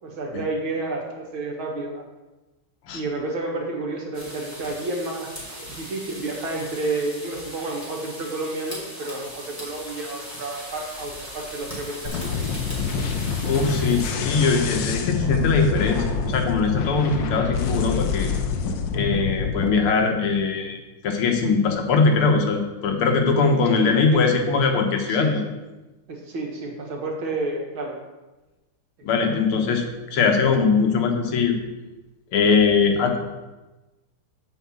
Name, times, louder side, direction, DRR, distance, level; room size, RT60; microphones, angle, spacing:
voice 1, 0.0-2.1 2.9-5.3 5.8-12.3 23.7-24.3 25.1-25.4 26.1-28.0 29.0-29.1, right 2 dB, 70° right, 0 dB, 2.3 m, -30 dB
sound 1, 4.1-14.1, equal, 5° left, 2.9 m, -38 dB
sound 2, 12.1-19.7, left 5 dB, 65° left, 1.3 m, -26 dB
voice 2, 13.4-18.3 18.9-20.8 21.0-25.4 29.0-29.8 30.1-31.6 32.3-33.2, left 4 dB, 80° left, 3 dB, 2.0 m, -21 dB
7.8 x 4.7 x 7.2 m, 1.1 s
omnidirectional pair, 2.4 m